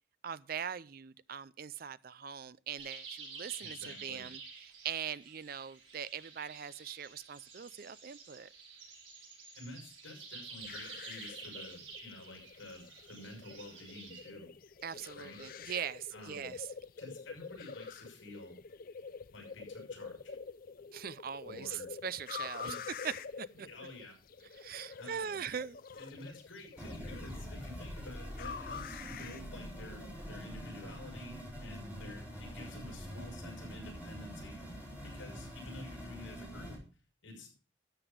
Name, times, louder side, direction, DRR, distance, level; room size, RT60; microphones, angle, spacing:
voice 1, 0.2-8.5 14.8-16.7 20.9-22.8 23.0-23.7 24.6-25.8, right 8 dB, 45° right, 0.4 m, -41 dB
sound 1, 2.8-14.3, right 4 dB, 75° right, 5.8 m, -50 dB
voice 2, 3.6-4.3 9.5-14.5 15.2-15.4 16.1-16.5 17.0-18.6 19.3-20.3 21.4-21.9 22.6-22.9 23.5-24.2 25.0-25.4 25.9-34.8 35.0-36.8 37.2-37.5, left 2 dB, 80° left, 6.2 m, -50 dB
sound 2, 10.6-30.2, left 5 dB, 45° left, 0.5 m, -47 dB
sound 3, 26.8-36.8, equal, 10° right, 4.4 m, -45 dB
13.0 x 7.2 x 5.0 m
head